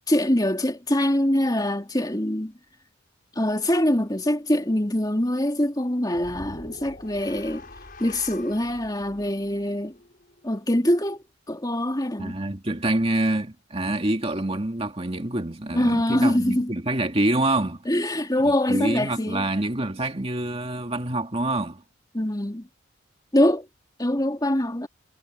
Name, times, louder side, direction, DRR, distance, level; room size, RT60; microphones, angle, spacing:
voice 1, 0.1-2.5 3.3-7.7 8.0-9.9 10.4-12.4 15.7-16.7 17.9-19.5 22.1-22.7 23.3-23.7 24.0-24.9, left 1 dB, 20° left, 3.0 m, -24 dB
sound 1, 6.1-10.5, left 2 dB, 45° left, 5.5 m, -44 dB
voice 2, 12.2-17.8 18.4-21.8, right 1 dB, 30° right, 2.3 m, -26 dB
head